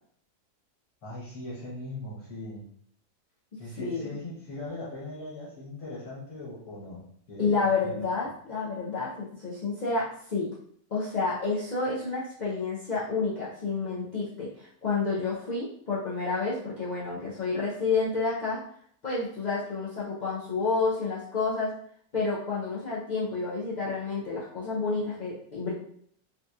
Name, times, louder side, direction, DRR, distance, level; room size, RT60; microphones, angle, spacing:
voice 1, 1.0-2.6 3.6-7.9, left 1 dB, 65° left, -6 dB, 1.4 m, -40 dB
voice 2, 3.8-4.1 7.4-10.5 10.9-18.6 19.0-21.7 22.1-25.7, left 4 dB, 80° left, -8 dB, 0.4 m, -29 dB
3.7 x 2.7 x 2.3 m, 0.64 s
omnidirectional pair, 1.6 m